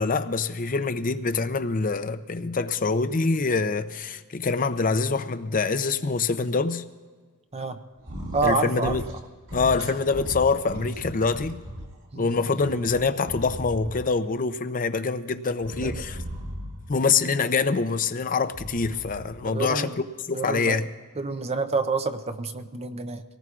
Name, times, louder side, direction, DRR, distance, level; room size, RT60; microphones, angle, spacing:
voice 1, 0.0-6.8 8.4-9.0 9.5-11.6 12.2-16.2 16.9-19.9 20.3-20.9, left 4 dB, 40° left, 0.6 m, -25 dB
sound 1, 8.0-8.5 8.8-9.2 9.5-11.9 12.3-14.2 15.6-17.0 18.4-19.5, equal, 65° right, 2.2 m, -37 dB
voice 2, 8.3-9.0 12.1-12.3 15.8-15.9 19.4-20.0 20.3-20.8 21.2-23.2, right 3 dB, 30° right, 0.6 m, -28 dB
26.0 x 18.5 x 2.5 m
head